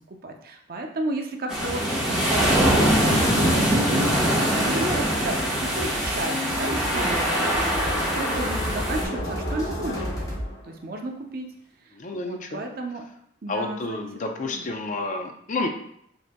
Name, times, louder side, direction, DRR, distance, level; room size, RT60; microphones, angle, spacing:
voice 1, 0.1-7.2 7.8-10.1 10.7-11.5 11.9-13.0 13.4-14.1 14.4-14.6, right 1 dB, 50° right, 3 dB, 0.5 m, -32 dB
sound 1, 1.5-9.0, equal, 5° right, 1.2 m, -23 dB
sound 2, 2.9-10.9, left 1 dB, 55° left, 0.9 m, -35 dB
sound 3, 4.9-10.5, equal, 20° left, 0.8 m, -34 dB
voice 2, 6.8-7.2 11.9-12.6 13.5-15.7, left 2 dB, 40° left, 4 dB, 0.5 m, -30 dB
6.5 x 2.8 x 2.2 m, 0.72 s
head